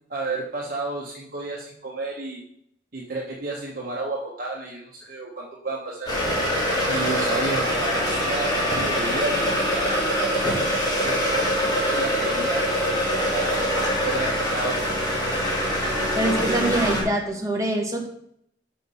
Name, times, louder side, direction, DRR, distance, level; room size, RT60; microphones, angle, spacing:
voice 1, 0.1-2.4 2.9-6.1 6.9-14.8, right 2 dB, 50° right, -3 dB, 1.2 m, -32 dB
sound 1, 6.1-17.0, equal, 25° left, 3.2 m, -24 dB
voice 2, 16.2-18.1, right 1 dB, 20° right, 1 dB, 1.4 m, -24 dB
6.1 x 5.9 x 5.6 m, 0.70 s
head